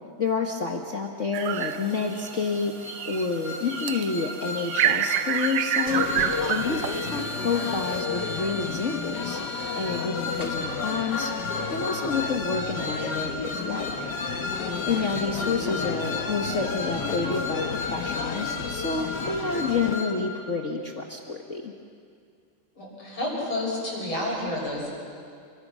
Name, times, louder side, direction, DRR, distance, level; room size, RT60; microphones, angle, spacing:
voice 1, 0.2-2.7 3.1-6.1 6.5-9.4 9.7-11.3 11.7-13.9 14.8-17.6 17.9-21.7, left 4 dB, 40° left, 2 dB, 1.5 m, -29 dB
sound 1, 1.3-2.4 2.8-8.0, right 10 dB, 85° right, 1.7 m, -28 dB
sound 2, 1.5-20.1, left 1 dB, 10° right, 4.9 m, -35 dB
sound 3, 5.9-19.9, left 6 dB, 60° left, 1.7 m, -32 dB
voice 2, 22.8-25.0, left 1 dB, 85° left, -4 dB, 7.8 m, -30 dB
29.0 x 24.5 x 6.3 m, 2.3 s
omnidirectional pair, 2.3 m